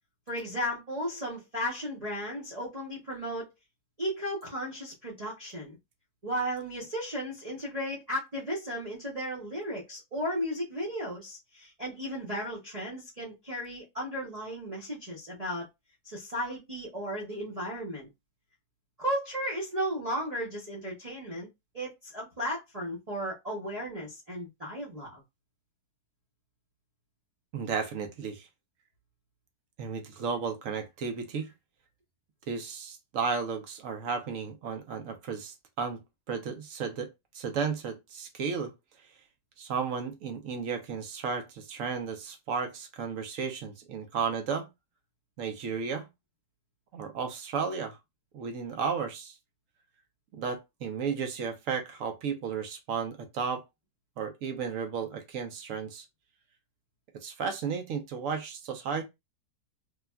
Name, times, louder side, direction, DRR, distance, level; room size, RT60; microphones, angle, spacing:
voice 1, 0.3-3.5 4.0-5.8 6.2-15.7 16.0-18.1 19.0-21.5 21.7-25.2, equal, 30° right, 0.7 m, -35 dB
voice 2, 27.5-28.5 29.8-31.5 32.5-36.0 36.3-37.1 37.3-38.7 39.6-44.7 45.4-46.1 46.9-48.0 48.3-49.4 50.3-53.6 54.2-56.1 57.2-59.0, right 6 dB, 65° right, 0.9 m, -33 dB
3.3 x 2.3 x 2.2 m
omnidirectional pair, 1.8 m